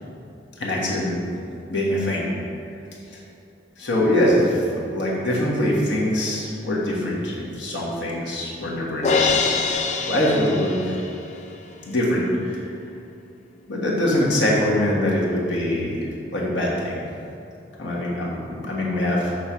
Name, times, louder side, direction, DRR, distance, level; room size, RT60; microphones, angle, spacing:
voice 1, 0.6-1.3 1.7-2.3 3.1-3.2 3.8-9.6 10.1-11.0 11.8-12.7 13.7-17.0 17.8-19.3, left 1 dB, 90° left, -4 dB, 1.3 m, -23 dB
Crash cymbal, 9.0-11.3, left 4 dB, 40° left, 0.3 m, -23 dB
6.6 x 3.1 x 5.6 m, 2.6 s
head